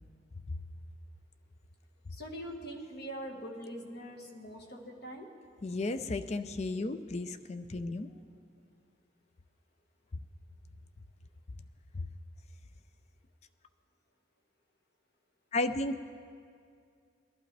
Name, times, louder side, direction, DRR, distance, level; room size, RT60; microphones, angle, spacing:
voice 1, 2.1-5.3, equal, 55° left, 1 dB, 1.5 m, -43 dB
voice 2, 5.6-8.1 11.9-12.1 15.5-16.0, left 2 dB, 35° left, 10 dB, 0.4 m, -34 dB
21.0 x 11.5 x 3.3 m, 2.3 s
head